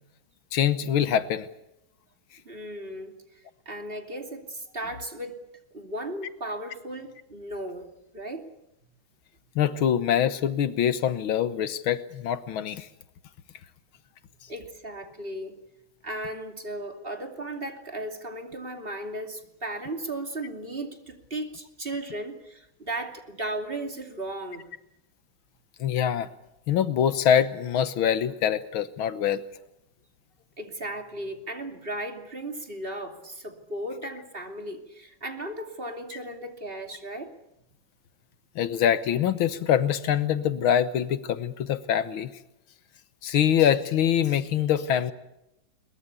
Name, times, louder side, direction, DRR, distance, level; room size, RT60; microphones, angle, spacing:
voice 1, 0.5-1.5 9.6-12.9 25.8-26.3 26.7-29.4 38.6-42.3 43.2-45.1, left 9 dB, 85° left, 13 dB, 1.9 m, -24 dB
voice 2, 2.4-3.1 3.7-5.4 5.7-8.5 14.5-15.6 16.0-24.6 30.6-37.3, right 1 dB, 25° right, 5 dB, 2.8 m, -36 dB
22.5 x 21.5 x 8.3 m, 0.86 s
omnidirectional pair, 2.2 m